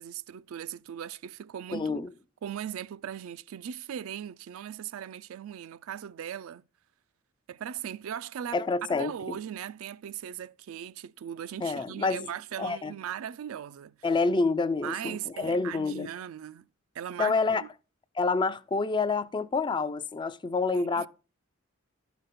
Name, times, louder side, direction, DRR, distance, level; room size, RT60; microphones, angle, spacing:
voice 1, 0.0-2.0 2.4-6.7 7.5-14.0 14.8-16.7 16.9-17.7 20.7-21.1, right 9 dB, 80° right, 0.3 m, -39 dB
voice 2, 1.7-2.1 8.5-9.4 11.6-12.3 12.6-12.9 14.0-16.1 17.2-17.6 18.2-21.1, left 4 dB, 20° left, 0.3 m, -28 dB
12.5 x 5.2 x 4.1 m
head